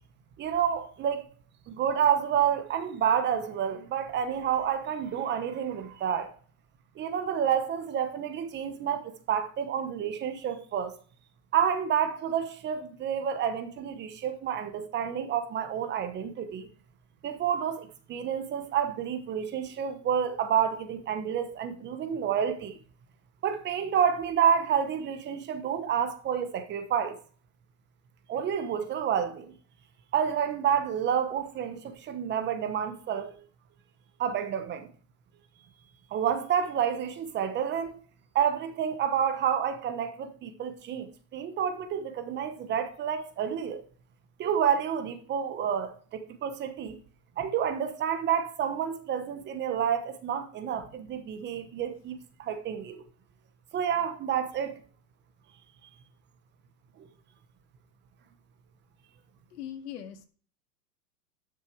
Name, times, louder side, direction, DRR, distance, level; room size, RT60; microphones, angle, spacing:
voice 1, 0.4-1.3 1.7-6.3 7.0-10.9 11.5-16.7 17.2-22.8 23.4-27.2 28.3-29.5 30.1-33.4 34.2-34.9 36.1-38.0 38.3-43.8 44.4-47.0 47.4-53.0 53.7-54.8, right 8 dB, 20° right, 1.1 m, -29 dB
voice 2, 59.5-60.3, left 10 dB, 70° left, 2.0 m, -40 dB
11.5 x 6.7 x 4.7 m
hypercardioid pair, 140°, 49 cm